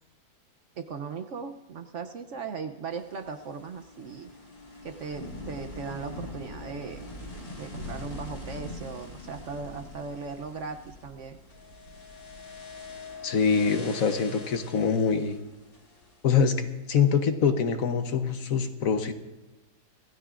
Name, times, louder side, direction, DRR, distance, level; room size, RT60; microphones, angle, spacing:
voice 1, 0.8-4.3 4.8-7.0 7.6-11.4, right 5 dB, 60° right, 8 dB, 0.9 m, -38 dB
sound 1, 2.9-17.1, left 4 dB, 80° left, 3.9 m, -47 dB
Thunder / Rain, 4.6-13.2, left 1 dB, 80° right, 4.0 m, -43 dB
voice 2, 13.2-15.4 16.2-19.1, left 6 dB, 60° left, 7 dB, 1.3 m, -24 dB
26.5 x 16.0 x 2.5 m, 1.1 s
omnidirectional pair, 1.7 m